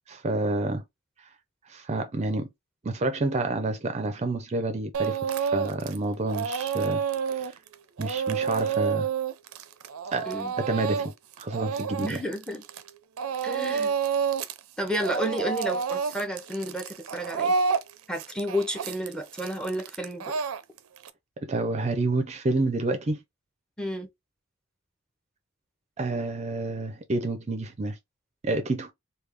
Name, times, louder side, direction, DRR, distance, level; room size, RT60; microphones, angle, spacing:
voice 1, 0.1-0.8 1.7-2.5 2.8-7.0 7.3-7.5 8.0-9.1 10.1-10.3 10.6-12.2 21.4-23.2 26.0-28.0 28.4-28.9, right 2 dB, 30° right, 0.5 m, -29 dB
Speech / Crying sobbing, 4.9-6.0 6.3-12.9 13.2-14.6 14.9-21.1, right 6 dB, 85° right, 0.4 m, -29 dB
voice 2, 12.0-12.6 13.4-13.9 14.8-17.5 18.1-20.3 23.8-24.1, equal, 5° left, 0.7 m, -31 dB
3.4 x 2.3 x 3.4 m
head